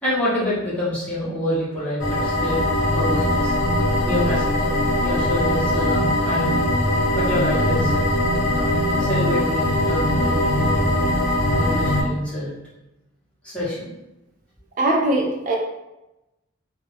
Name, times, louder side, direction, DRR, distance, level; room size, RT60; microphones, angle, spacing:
voice 1, 0.0-3.5 4.0-4.7 5.0-6.6 7.1-8.1 8.5-11.1 11.5-12.5 13.4-13.9, left 1 dB, 5° left, -10 dB, 0.9 m, -27 dB
sound 1, 2.0-12.0, left 1 dB, 85° left, 0.9 m, -21 dB
voice 2, 14.8-15.6, right 1 dB, 40° right, 0 dB, 0.4 m, -20 dB
2.3 x 2.1 x 3.2 m, 0.95 s
head